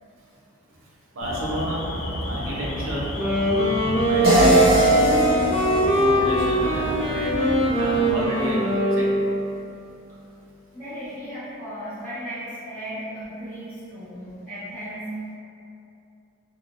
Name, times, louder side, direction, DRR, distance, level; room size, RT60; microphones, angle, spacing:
voice 1, 1.1-1.8 2.2-3.1 4.0-4.8 6.0-7.5 7.8-8.6 8.9-9.2, equal, 70° right, -5 dB, 0.7 m, -30 dB
Alarm, 1.2-8.1, left 1 dB, 85° left, 0.5 m, -32 dB
Wind instrument woodwind instrument, 3.0-9.6, equal, 35° left, 0.6 m, -22 dB
sound 1, 4.2-7.3, right 1 dB, 45° right, 0.9 m, -20 dB
voice 2, 10.7-15.1, equal, 10° left, -20 dB, 1.0 m, -36 dB
3.6 x 2.2 x 2.6 m, 2.7 s
head